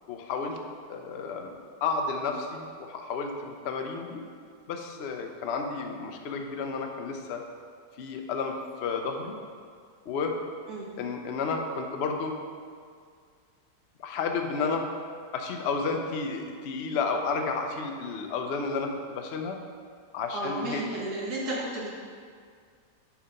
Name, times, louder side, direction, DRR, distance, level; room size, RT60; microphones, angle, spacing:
voice 1, 0.1-0.6 0.9-1.5 1.8-4.2 4.7-7.4 8.0-8.5 8.8-9.3 10.1-10.3 11.0-12.4 14.0-14.9 15.3-19.6 20.1-20.8, left 4 dB, 70° left, 3 dB, 0.6 m, -31 dB
voice 2, 20.3-21.9, right 1 dB, 55° right, -5 dB, 1.8 m, -33 dB
7.3 x 4.9 x 5.1 m, 2.1 s
omnidirectional pair, 2.0 m